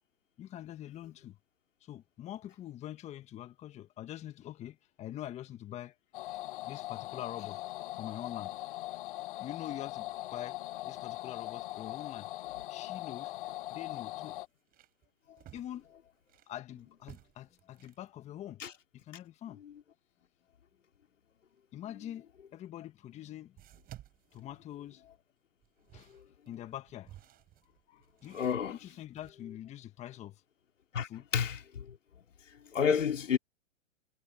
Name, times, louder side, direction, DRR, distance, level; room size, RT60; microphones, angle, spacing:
voice 1, 0.4-1.4 1.8-5.9 6.3-8.5 9.4-10.6 10.8-12.3 12.7-13.3 13.7-14.4 15.5-15.9 16.5-18.6 18.9-19.6 21.7-22.3 22.5-23.6 24.3-25.0 25.9-26.2 26.5-27.2 27.9-30.4 31.0-31.2, left 12 dB, 20° left, 1.5 m, -45 dB
sound 1, 6.1-14.5, left 17 dB, 45° left, 1.1 m, -41 dB
sound 2, 13.0-13.2 13.6-13.7 14.2-16.6 17.0-18.1 22.3-22.4 23.6-25.1 25.6-29.3, right 13 dB, 25° right, 7.2 m, -56 dB
voice 2, 28.3-28.8 30.9-32.0 32.7-33.4, left 7 dB, 80° left, 3.1 m, -30 dB
hypercardioid pair, 135°, 37 cm